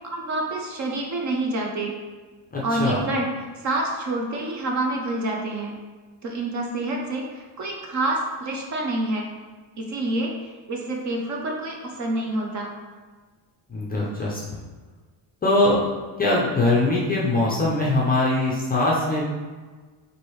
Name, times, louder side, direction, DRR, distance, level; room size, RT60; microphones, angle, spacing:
voice 1, 0.0-1.9 2.6-5.7 6.2-9.3 9.8-12.7, right 2 dB, 40° right, 0 dB, 0.5 m, -27 dB
voice 2, 2.5-3.0 13.7-14.4 15.4-15.8 16.2-19.2, left 2 dB, 20° left, -5 dB, 0.4 m, -22 dB
4.6 x 2.7 x 3.0 m, 1.4 s
cardioid pair, 170°, 47 cm